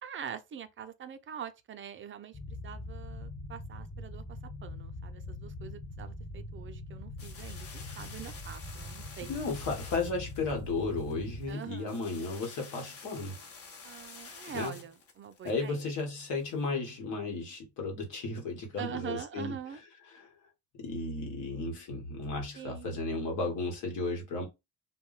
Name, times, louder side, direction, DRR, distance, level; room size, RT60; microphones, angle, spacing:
voice 1, 0.0-4.2 4.6-9.3 11.5-12.0 13.8-15.8 18.8-19.8 22.6-23.0, right 8 dB, 45° right, 0.4 m, -44 dB
sound 1, 2.3-11.5, left 2 dB, 25° left, 1.1 m, -43 dB
sound 2, 7.2-16.6, left 4 dB, 50° left, 0.8 m, -50 dB
voice 2, 9.3-13.4 14.5-14.8 15.4-19.5 20.1-20.3 20.8-24.5, left 3 dB, 85° left, 1.1 m, -34 dB
2.2 x 2.1 x 3.8 m
cardioid pair, 90°, 30 cm